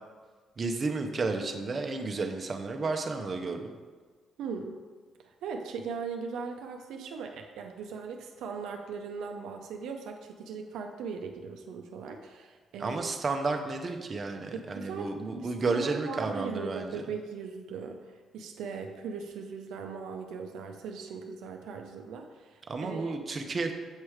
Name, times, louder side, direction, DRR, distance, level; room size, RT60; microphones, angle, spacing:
voice 1, 0.6-3.7 12.8-17.1 22.7-23.7, right 3 dB, 40° right, 4 dB, 0.6 m, -32 dB
voice 2, 4.4-4.8 5.2-13.1 14.5-18.0 18.3-23.1, right 5 dB, 85° right, 3 dB, 0.5 m, -39 dB
7.3 x 3.1 x 4.8 m, 1.5 s
cardioid pair, 90°, 0 cm